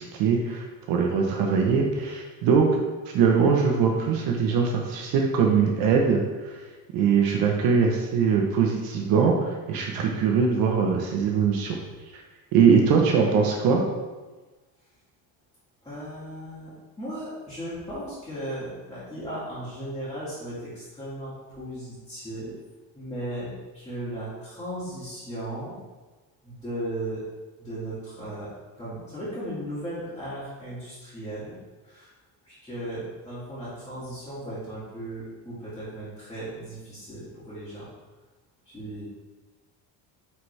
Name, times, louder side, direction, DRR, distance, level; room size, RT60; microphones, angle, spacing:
voice 1, 0.0-2.8 3.1-6.6 6.9-11.8 12.1-12.2 12.5-13.8, right 6 dB, 60° right, 1 dB, 1.0 m, -22 dB
voice 2, 12.6-13.0 15.8-16.7 17.0-22.5 22.9-25.8 26.4-27.2 27.6-31.6 31.8-32.1 32.4-37.9 38.7-39.0, right 1 dB, 10° left, -12 dB, 2.2 m, -36 dB
9.3 x 4.2 x 3.3 m, 1.2 s
cardioid pair, 160°, 40 cm